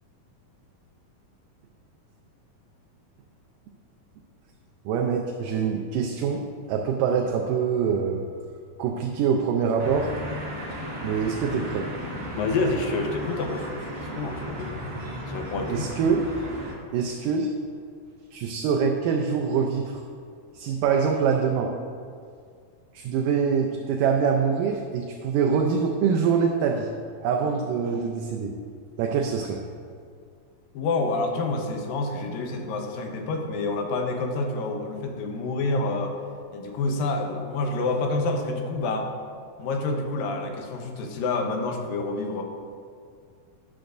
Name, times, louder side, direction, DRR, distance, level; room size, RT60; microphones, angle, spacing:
voice 1, 4.9-6.4 6.7-8.2 8.8-10.1 11.0-11.9 15.7-16.3 16.9-17.5 18.3-20.0 20.5-21.7 22.9-26.9 27.2-28.5 29.0-29.6, right 6 dB, 80° right, 2 dB, 2.1 m, -24 dB
sound 1, 9.8-16.7, equal, 45° right, 1.2 m, -35 dB
voice 2, 12.4-14.9 15.3-15.9 30.7-36.2 36.5-39.1 39.6-42.4, left 3 dB, 80° left, 3 dB, 2.6 m, -28 dB
12.5 x 10.5 x 2.6 m, 2.2 s
omnidirectional pair, 4.1 m